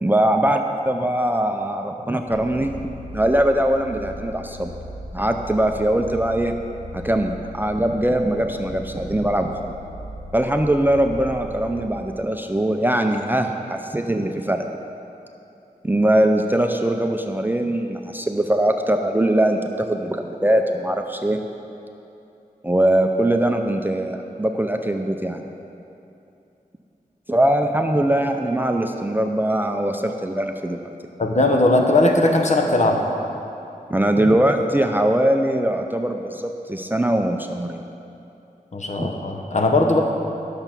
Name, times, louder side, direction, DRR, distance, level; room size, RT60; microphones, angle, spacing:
voice 1, 0.0-2.8 3.1-4.7 5.1-6.5 6.9-9.7 10.3-14.7 15.8-21.4 22.6-25.4 27.3-30.9 33.9-37.8 39.0-39.1, right 1 dB, 15° right, 4 dB, 0.5 m, -21 dB
sound 1, 2.3-11.9, left 1 dB, 65° left, 1.3 m, -38 dB
voice 2, 31.2-33.0 38.7-40.0, left 2 dB, 50° left, 1 dB, 1.1 m, -18 dB
11.0 x 6.8 x 6.0 m, 2.8 s
wide cardioid pair, 90°, 15 cm